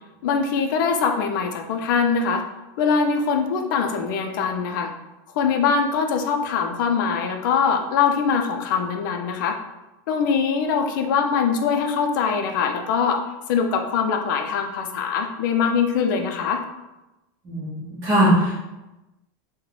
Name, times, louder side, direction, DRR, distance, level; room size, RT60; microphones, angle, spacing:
voice 1, 0.2-2.4 2.8-4.9 5.4-9.6 10.1-13.2 13.5-16.6, left 6 dB, 65° left, 4 dB, 0.4 m, -22 dB
voice 2, 17.5-18.7, equal, 25° right, -9 dB, 0.8 m, -20 dB
3.1 x 2.2 x 3.7 m, 0.99 s
supercardioid pair, 165°, 11 cm